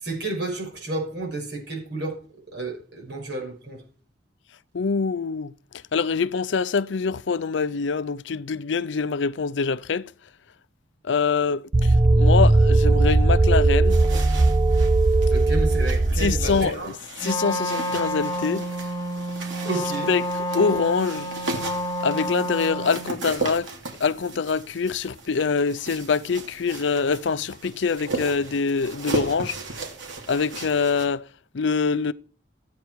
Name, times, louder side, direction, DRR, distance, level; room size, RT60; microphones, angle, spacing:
voice 1, 0.0-2.2 2.5-3.8 15.3-16.9 19.6-20.1, right 2 dB, 65° right, 6.3 m, -31 dB
voice 2, 4.7-5.5 5.9-10.1 11.0-14.0 16.2-17.0 17.2-18.7 20.1-20.3 20.5-21.3 22.0-23.7 24.0-29.6 30.3-31.3 31.5-32.1, left 5 dB, 75° left, 0.5 m, -24 dB
sound 1, 11.7-16.7, right 2 dB, 30° right, 0.6 m, -18 dB
sound 2, 13.8-31.1, right 3 dB, 85° right, 2.9 m, -36 dB
Wind instrument woodwind instrument, 17.2-23.2, equal, 20° left, 1.1 m, -29 dB
14.5 x 9.3 x 4.7 m
head